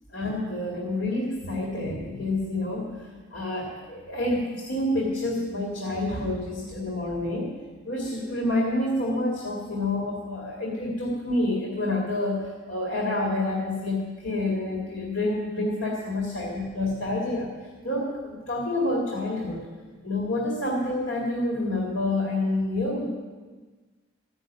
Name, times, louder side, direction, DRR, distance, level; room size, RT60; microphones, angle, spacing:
voice 1, 0.1-3.0 3.3-7.5 7.9-17.5 17.8-19.7 20.0-23.1, left 2 dB, 70° left, -3 dB, 2.2 m, -28 dB
14.5 x 6.5 x 8.2 m, 1.4 s
head